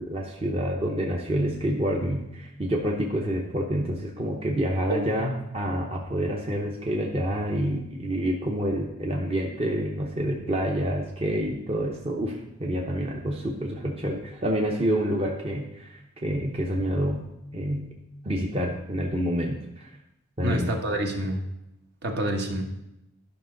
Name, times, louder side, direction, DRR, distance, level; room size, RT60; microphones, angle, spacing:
voice 1, 0.0-17.2 17.5-17.9 18.2-19.9 20.4-20.7, equal, 30° right, -1 dB, 0.8 m, -28 dB
voice 2, 4.9-5.3 20.4-21.4 22.0-22.6, right 1 dB, 55° right, 2 dB, 1.3 m, -28 dB
12.0 x 5.9 x 3.9 m, 0.87 s
head